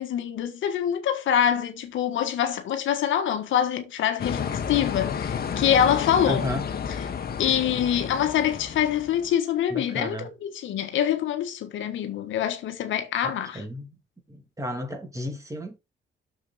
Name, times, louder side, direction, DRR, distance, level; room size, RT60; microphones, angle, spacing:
voice 1, 0.0-6.5 7.4-13.6, left 9 dB, 80° left, 1.4 m, -25 dB
sound 1, 4.2-9.3, left 7 dB, 50° left, 1.4 m, -31 dB
voice 2, 6.3-6.6 9.7-10.3 13.2-13.9 14.3-15.8, left 1 dB, 15° right, 2.8 m, -33 dB
6.9 x 6.6 x 4.2 m
cardioid pair, 90°, 20 cm